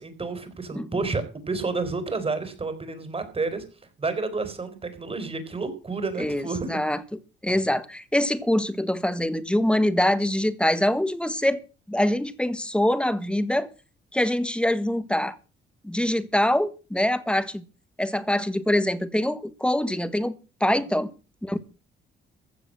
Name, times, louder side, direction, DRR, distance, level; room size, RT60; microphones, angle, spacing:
voice 1, 0.0-3.6 4.0-6.8 20.7-21.1, right 3 dB, 30° right, 4.3 m, -30 dB
voice 2, 6.2-7.0 7.4-11.6 11.9-13.7 14.1-15.4 15.8-17.6 18.0-20.3 20.6-21.1 21.4-21.6, left 1 dB, 5° left, 1.6 m, -24 dB
15.0 x 7.0 x 7.7 m
cardioid pair, 90°, 20 cm